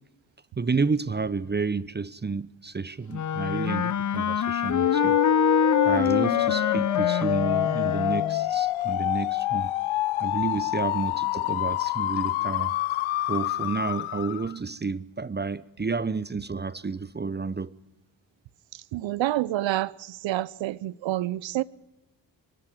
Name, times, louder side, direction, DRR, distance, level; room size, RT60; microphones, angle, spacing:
voice 1, 0.6-5.2 5.9-9.7 10.2-12.7 13.3-17.7, right 4 dB, 20° right, 0.8 m, -30 dB
Wind instrument woodwind instrument, 3.1-8.5, left 7 dB, 40° left, 0.8 m, -25 dB
sound 1, 4.7-14.5, left 16 dB, 85° left, 0.7 m, -27 dB
voice 2, 18.9-21.6, right 15 dB, 70° right, 0.8 m, -28 dB
23.5 x 13.0 x 9.1 m
supercardioid pair, 45°, 47 cm